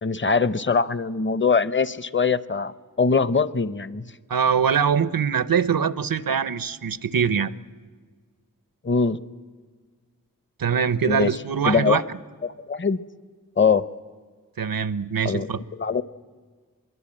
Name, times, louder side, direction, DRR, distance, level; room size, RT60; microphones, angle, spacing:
voice 1, 0.0-4.1 8.8-9.2 11.1-11.3 11.6-12.0 12.4-13.0 13.6-13.8 15.2-16.0, left 5 dB, 35° left, 16 dB, 0.8 m, -22 dB
voice 2, 4.3-7.5 10.6-12.0 14.6-15.6, right 7 dB, 90° right, 16 dB, 0.8 m, -23 dB
23.5 x 22.0 x 8.7 m, 1.5 s
wide cardioid pair, 60°, 34 cm